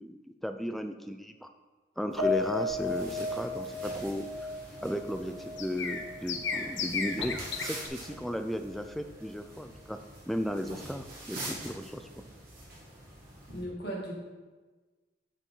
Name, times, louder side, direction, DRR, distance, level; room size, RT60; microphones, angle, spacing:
voice 1, 0.0-1.5 2.0-4.3 4.8-10.0 10.3-12.1, equal, ahead, 7 dB, 0.3 m, -35 dB
sound 1, 2.1-7.9, left 5 dB, 80° left, 0.8 m, -37 dB
Piano, 2.2-6.7 7.0-7.2 7.6-7.7, left 3 dB, 75° right, 2.2 m, -35 dB
sound 2, 2.7-13.6, right 1 dB, 50° right, 2.0 m, -45 dB
voice 2, 13.5-14.1, right 1 dB, 55° left, -2 dB, 1.9 m, -37 dB
7.0 x 5.6 x 4.5 m, 1.3 s
head